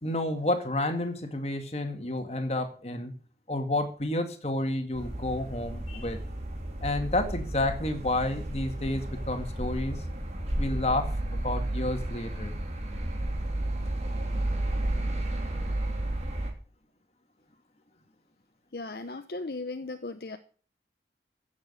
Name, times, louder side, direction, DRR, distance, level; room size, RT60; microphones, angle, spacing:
voice 1, 0.0-3.1 3.5-6.2 6.8-10.0 10.6-12.5, left 1 dB, 35° left, 2.0 m, -30 dB
sound 1, 4.9-16.5, right 1 dB, 40° right, 2.8 m, -32 dB
voice 2, 18.7-20.4, left 2 dB, 60° left, 0.9 m, -36 dB
15.5 x 7.3 x 6.8 m
head